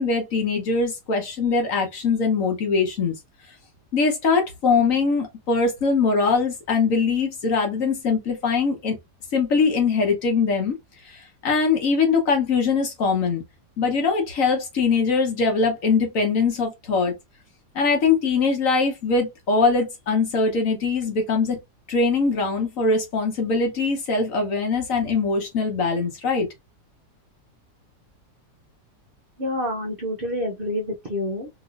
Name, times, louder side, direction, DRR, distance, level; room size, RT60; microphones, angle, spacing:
voice 1, 0.0-3.1 3.9-9.0 9.3-10.7 11.1-13.4 13.8-17.1 17.7-21.6 21.9-26.5, left 4 dB, 55° left, 1.3 m, -22 dB
voice 2, 29.4-31.5, left 1 dB, 55° right, 0.6 m, -28 dB
3.0 x 3.0 x 2.4 m
omnidirectional pair, 1.8 m